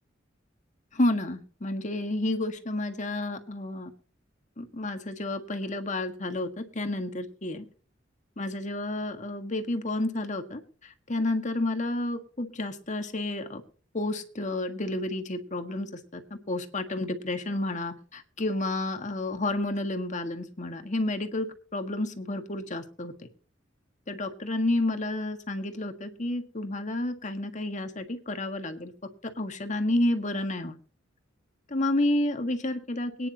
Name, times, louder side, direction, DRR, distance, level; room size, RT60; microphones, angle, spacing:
voice 1, 0.9-3.9 4.6-7.7 8.4-10.6 11.1-13.6 13.9-21.5 21.7-23.1 24.1-28.9 29.4-30.8 31.7-33.3, left 1 dB, 40° left, 6 dB, 1.7 m, -30 dB
23.0 x 10.0 x 2.9 m, 0.41 s
head